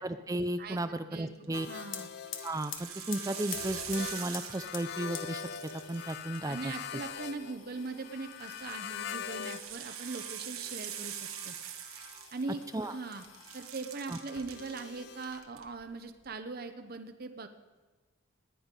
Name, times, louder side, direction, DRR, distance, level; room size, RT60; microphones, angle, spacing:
voice 1, 0.0-1.7 2.4-5.4 5.7-6.7 12.7-12.9 14.1-14.2, right 1 dB, 15° right, 11 dB, 0.4 m, -34 dB
voice 2, 0.6-1.3 1.7-2.1 6.4-11.2 11.4-11.6 12.3-12.6 12.9-13.2 13.5-17.5, right 3 dB, 45° right, 7 dB, 0.7 m, -40 dB
sound 1, 1.4-1.8 2.3-5.0 5.3-7.1 8.3-12.8 13.1-14.8 15.2-15.6, right 10 dB, 85° right, 1.3 m, -44 dB
sound 2, 1.5-9.7 10.0-15.4, left 7 dB, 50° left, 0.5 m, -44 dB
sound 3, 1.8-13.8 14.2-15.0 15.3-16.3, left 8 dB, 70° left, 1.5 m, -49 dB
19.0 x 10.0 x 5.3 m, 1.3 s
head